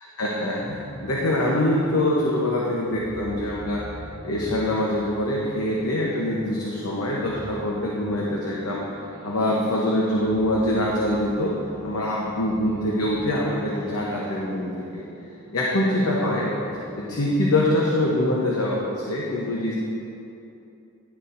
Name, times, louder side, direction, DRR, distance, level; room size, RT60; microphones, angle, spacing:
voice 1, 0.2-3.8 4.2-8.8 9.2-11.6 11.8-15.0 15.5-16.5 17.0-19.7, left 1 dB, 85° left, -3 dB, 0.8 m, -24 dB
sound 1, 0.6-17.3, equal, 30° left, 1.4 m, -44 dB
11.0 x 6.8 x 2.6 m, 2.8 s
head